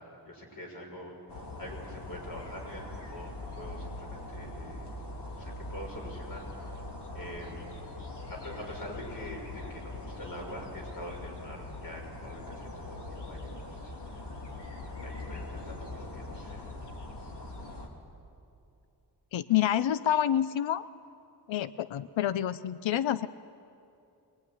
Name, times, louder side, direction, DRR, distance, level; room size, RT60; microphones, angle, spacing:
voice 1, 0.0-5.0 5.4-6.8 7.1-7.8 8.3-14.2 14.5-14.7 15.0-16.7, left 1 dB, 50° left, 0 dB, 6.1 m, -45 dB
sound 1, 1.3-17.9, left 2 dB, 65° left, 3.3 m, -42 dB
voice 2, 19.3-20.8 21.5-23.3, left 11 dB, 85° left, 14 dB, 0.7 m, -28 dB
23.5 x 21.5 x 9.7 m, 2.6 s
wide cardioid pair, 150°, 45 cm